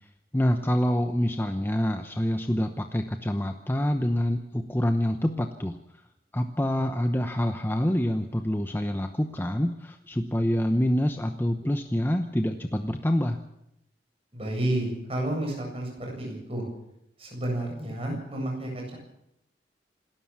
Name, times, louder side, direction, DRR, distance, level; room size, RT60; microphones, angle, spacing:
voice 1, 0.3-5.8 6.3-13.4, equal, 10° left, 6 dB, 0.8 m, -26 dB
voice 2, 14.3-16.7 17.2-19.0, right 1 dB, 35° right, 1 dB, 7.8 m, -31 dB
27.0 x 13.0 x 7.3 m, 0.81 s
head